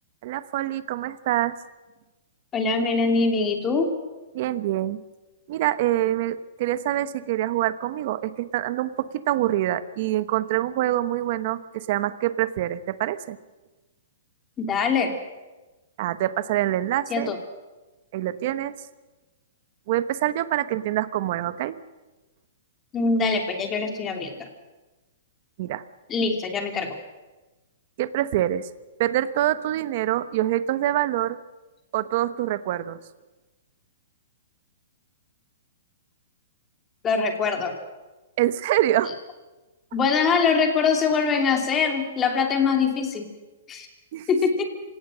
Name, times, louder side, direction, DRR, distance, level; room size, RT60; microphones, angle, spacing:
voice 1, 0.2-1.5 4.3-5.0 5.5-13.4 16.0-17.3 18.1-18.7 19.9-21.8 25.6-25.8 28.0-28.7 29.0-31.4 31.9-33.0 38.4-39.1 44.1-44.3, right 13 dB, 45° right, 13 dB, 1.1 m, -25 dB
voice 2, 2.5-3.9 14.6-15.1 17.1-17.4 22.9-24.5 26.1-27.0 37.0-37.8 39.1-39.2 39.9-43.3 43.7-43.9 44.3-44.6, left 5 dB, 15° left, 4 dB, 2.8 m, -23 dB
27.0 x 17.5 x 6.3 m, 1.2 s
hypercardioid pair, 155°, 0 cm